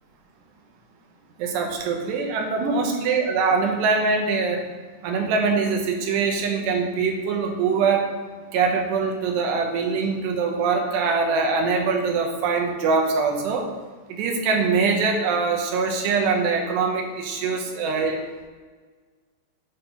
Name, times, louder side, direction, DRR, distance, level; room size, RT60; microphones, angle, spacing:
voice 1, 1.4-4.6 5.0-8.0 8.5-13.6 14.2-18.2, right 4 dB, 75° right, 2 dB, 3.0 m, -23 dB
8.7 x 4.3 x 5.6 m, 1.5 s
omnidirectional pair, 5.1 m